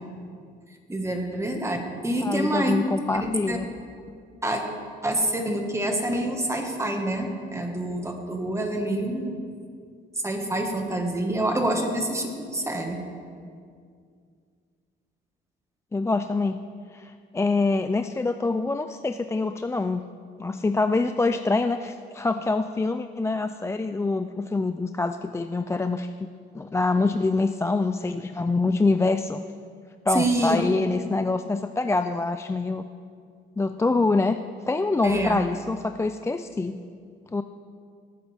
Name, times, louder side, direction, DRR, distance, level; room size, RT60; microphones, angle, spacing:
voice 1, 0.9-2.7 3.2-3.6 4.4-4.6 5.0-9.4 10.2-13.0 30.1-30.7 35.0-35.4, right 1 dB, 15° right, 3 dB, 1.7 m, -27 dB
voice 2, 2.2-3.7 15.9-16.6 16.9-20.0 20.4-26.1 26.5-29.4 30.1-32.9 33.6-34.4 34.7-36.8 37.3-37.4, left 3 dB, 15° left, 8 dB, 0.3 m, -25 dB
18.0 x 9.3 x 3.6 m, 2.2 s
cardioid pair, 90°, 20 cm